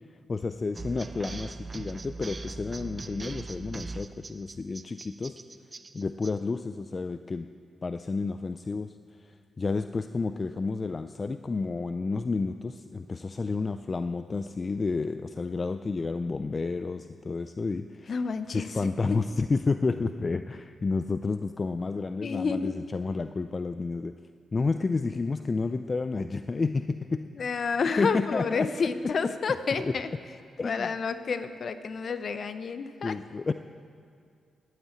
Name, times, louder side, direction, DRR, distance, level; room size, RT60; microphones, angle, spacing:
voice 1, 0.1-5.4 5.9-7.5 7.8-8.9 9.2-18.1 18.5-24.1 24.5-27.3 28.0-28.7 29.0-29.3 29.8-29.9 30.6-30.9 33.0-33.5, left 4 dB, 35° left, 10 dB, 0.4 m, -30 dB
sound 1, 0.7-6.3, right 3 dB, 30° right, 0.5 m, -40 dB
voice 2, 18.1-18.7 19.1-19.2 22.2-22.7 27.4-30.1 30.6-33.1, left 5 dB, 55° left, 11 dB, 0.8 m, -30 dB
11.0 x 9.1 x 8.6 m, 2.3 s
cardioid pair, 70°, 0 cm